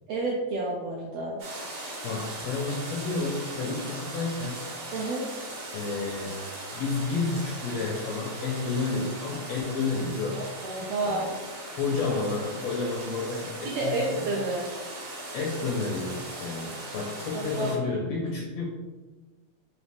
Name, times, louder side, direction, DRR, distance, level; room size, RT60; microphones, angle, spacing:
voice 1, 0.1-1.4 4.9-5.2 10.3-11.3 13.6-14.8 17.3-17.7, right 2 dB, 85° right, -3 dB, 1.4 m, -30 dB
sound 1, 1.4-17.8, right 1 dB, 65° right, 1.7 m, -39 dB
voice 2, 2.0-4.6 5.7-6.3 6.7-10.4 11.0-11.3 11.8-14.3 15.3-18.7, left 4 dB, 80° left, -2 dB, 1.4 m, -30 dB
4.8 x 2.6 x 3.4 m, 1.3 s
omnidirectional pair, 3.4 m